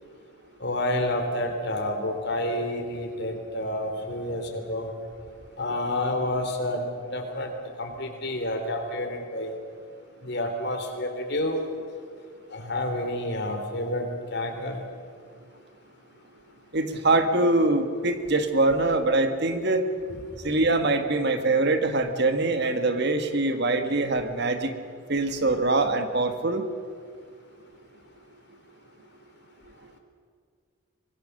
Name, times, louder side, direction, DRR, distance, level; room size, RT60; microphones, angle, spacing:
voice 1, 0.6-4.9 5.6-7.5 7.8-9.5 10.2-11.6 12.5-14.8 20.1-20.2, left 1 dB, 50° left, 4 dB, 3.3 m, -29 dB
voice 2, 16.7-19.9 20.4-24.7 25.1-26.6, right 2 dB, 50° right, 7 dB, 1.6 m, -23 dB
24.5 x 21.0 x 6.7 m, 2.1 s
head